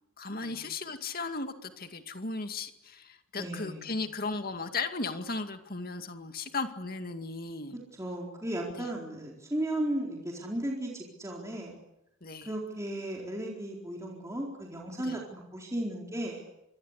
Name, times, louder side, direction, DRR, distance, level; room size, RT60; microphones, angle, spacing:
voice 1, 0.2-7.8 8.8-8.9 12.2-12.5 15.1-15.2, left 3 dB, 45° left, 7 dB, 2.3 m, -36 dB
voice 2, 3.4-3.9 8.0-11.7 12.4-16.4, right 1 dB, 15° right, -2 dB, 4.2 m, -35 dB
28.0 x 24.0 x 8.3 m, 0.86 s
head